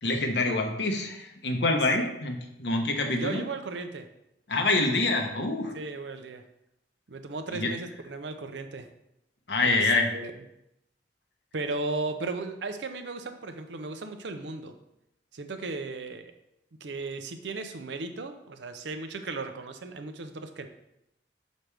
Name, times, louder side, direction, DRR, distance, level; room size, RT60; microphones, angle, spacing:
voice 1, 0.0-3.4 4.5-5.7 7.5-7.7 9.5-10.1, left 2 dB, 75° left, 4 dB, 0.9 m, -26 dB
voice 2, 3.1-4.1 5.7-6.4 7.1-8.9 9.6-10.3 11.5-14.7 15.3-16.3 16.8-20.7, right 3 dB, 85° right, 8 dB, 0.6 m, -36 dB
6.0 x 5.1 x 3.3 m, 0.84 s
head